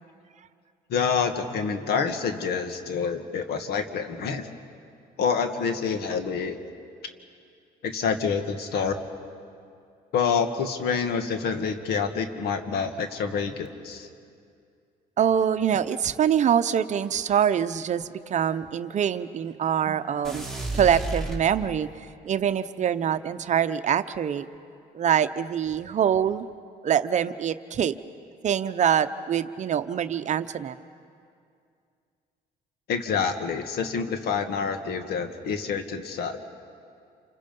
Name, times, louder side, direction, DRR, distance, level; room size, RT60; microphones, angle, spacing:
voice 1, 0.9-4.5 5.2-6.6 7.8-8.9 10.1-14.1 32.9-36.4, left 6 dB, 70° left, 7 dB, 1.9 m, -27 dB
voice 2, 15.2-20.4 20.7-21.9 22.2-24.5 24.9-26.5 26.8-27.9 28.4-30.8, right 9 dB, 45° right, 12 dB, 0.7 m, -24 dB
sound 1, 20.2-22.0, right 2 dB, 5° left, 2.7 m, -32 dB
28.0 x 27.0 x 5.4 m, 2.3 s
cardioid pair, 110°, 17 cm